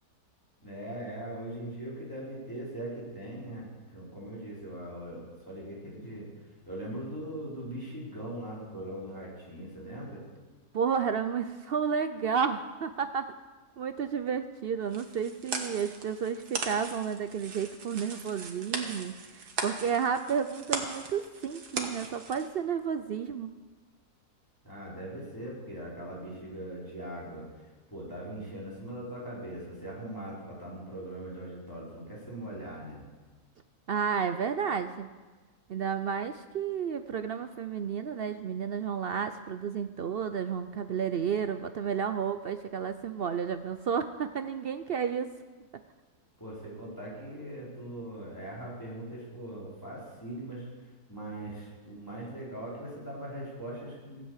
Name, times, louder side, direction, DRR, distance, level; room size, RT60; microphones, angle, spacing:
voice 1, 0.6-6.3 6.6-10.2 24.6-27.4 27.9-33.1 46.4-54.3, right 1 dB, 10° left, -6 dB, 5.1 m, -40 dB
voice 2, 10.7-13.3 13.8-23.5 33.9-35.1 35.7-45.3, right 7 dB, 70° right, 10 dB, 0.5 m, -31 dB
sound 1, 14.9-22.5, right 4 dB, 90° right, 2.0 m, -38 dB
16.0 x 8.3 x 8.2 m, 1.3 s
omnidirectional pair, 1.7 m